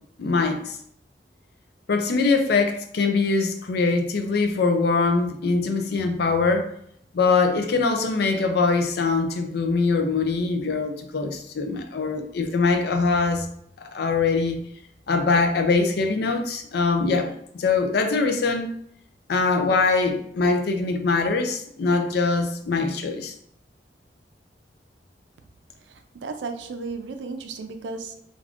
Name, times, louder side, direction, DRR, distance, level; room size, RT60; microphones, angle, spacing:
voice 1, 0.2-0.8 1.9-6.7 7.1-13.5 13.9-14.6 15.1-18.7 19.3-23.3, left 4 dB, 65° left, 6 dB, 0.4 m, -23 dB
voice 2, 25.9-28.2, right 4 dB, 85° right, 6 dB, 0.4 m, -34 dB
3.4 x 2.5 x 2.4 m, 0.69 s
head